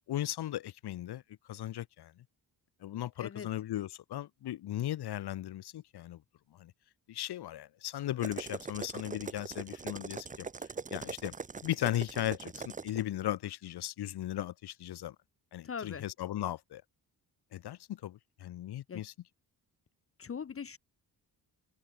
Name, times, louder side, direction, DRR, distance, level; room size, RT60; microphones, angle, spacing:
voice 1, 0.1-1.2 1.5-2.1 2.8-6.2 6.6-6.7 7.1-10.5 10.9-11.3 11.6-15.1 15.5-16.8 17.5-19.1, left 13 dB, 75° left, 1.0 m, -37 dB
voice 2, 3.2-3.5 15.6-16.0 18.9-19.0 20.2-20.8, left 6 dB, 35° left, 1.1 m, -40 dB
sound 1, 8.2-13.0, right 5 dB, 20° right, 0.7 m, -41 dB
wide cardioid pair, 165°, 40 cm